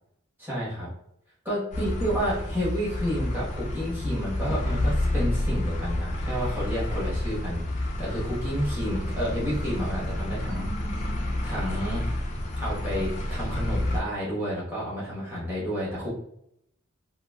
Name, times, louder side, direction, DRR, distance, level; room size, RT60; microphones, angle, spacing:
voice 1, 0.4-0.9 1.4-10.7 11.0-12.0 12.6-16.1, equal, 10° right, -9 dB, 1.1 m, -30 dB
sound 1, 1.7-14.0, left 1 dB, 35° left, 0.3 m, -29 dB
2.9 x 2.5 x 2.3 m, 0.73 s
head